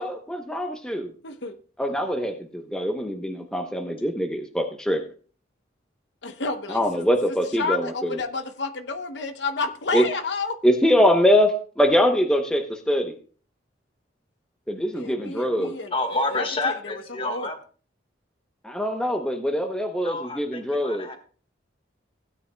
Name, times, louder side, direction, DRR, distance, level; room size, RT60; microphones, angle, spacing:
voice 1, 0.0-1.1 1.8-5.0 6.7-8.2 9.9-10.1 10.6-13.1 14.7-15.7 18.6-21.1, equal, 5° left, 0.8 m, -23 dB
voice 2, 1.2-1.6 1.8-1.9 6.2-7.1 7.5-10.6 14.9-16.9 17.2-17.5, left 3 dB, 70° left, 0.9 m, -31 dB
voice 3, 15.9-17.6 20.0-21.2, left 2 dB, 30° left, 1.5 m, -28 dB
16.0 x 9.6 x 2.3 m
head